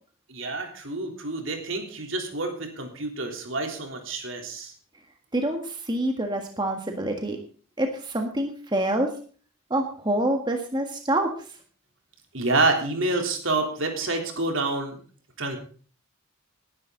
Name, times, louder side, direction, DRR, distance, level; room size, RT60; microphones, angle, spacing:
voice 1, 0.3-4.7 12.3-15.0 15.4-15.6, right 2 dB, 65° right, 3 dB, 3.5 m, -28 dB
voice 2, 5.3-7.4 7.8-9.1 9.7-11.3, right 1 dB, 20° right, 3 dB, 1.7 m, -26 dB
19.5 x 11.0 x 3.9 m, 0.41 s
head